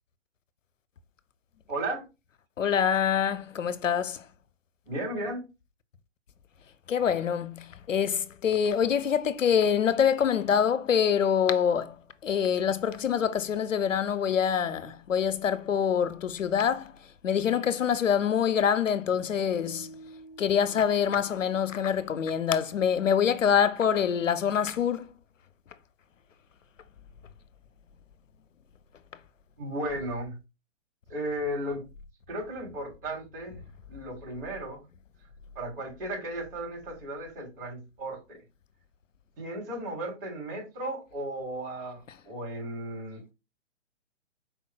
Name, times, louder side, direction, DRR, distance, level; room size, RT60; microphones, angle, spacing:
voice 1, 1.7-2.0 4.9-5.4 29.6-30.4 31.1-31.8 32.3-33.6 33.9-34.8 35.5-38.4 39.4-43.3, right 1 dB, 45° right, 2.9 m, -35 dB
voice 2, 2.6-4.3 6.9-12.0 12.2-17.0 17.2-19.9 20.4-25.1, left 8 dB, 80° left, 0.6 m, -25 dB
sound 1, 19.5-22.7, right 2 dB, ahead, 1.5 m, -50 dB
5.1 x 4.5 x 2.2 m
figure-of-eight pair, 130°, 38 cm